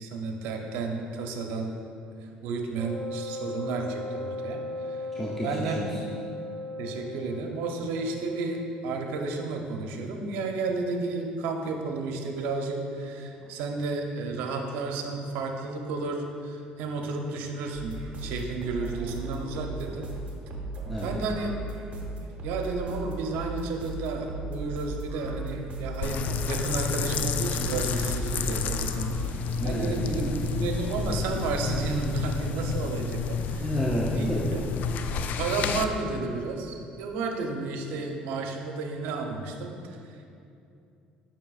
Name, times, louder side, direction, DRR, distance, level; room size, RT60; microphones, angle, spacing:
voice 1, 0.0-1.7 2.4-5.1 5.4-5.8 6.8-20.1 21.0-21.6 22.4-30.2 30.5-33.7 34.1-34.6 35.4-40.0, right 3 dB, 80° right, 3 dB, 0.7 m, -32 dB
Wind instrument woodwind instrument, 2.7-9.4, left 2 dB, 20° right, 1.1 m, -37 dB
voice 2, 5.1-6.1 13.4-13.5 20.9-21.2 29.6-30.4 33.6-34.5, equal, 5° left, -6 dB, 0.7 m, -31 dB
sound 1, 17.7-31.2, right 2 dB, 50° right, 1.1 m, -37 dB
sound 2, 26.0-35.9, left 5 dB, 60° left, 0.3 m, -30 dB
7.4 x 5.7 x 2.4 m, 2.5 s
supercardioid pair, 95°, 3 cm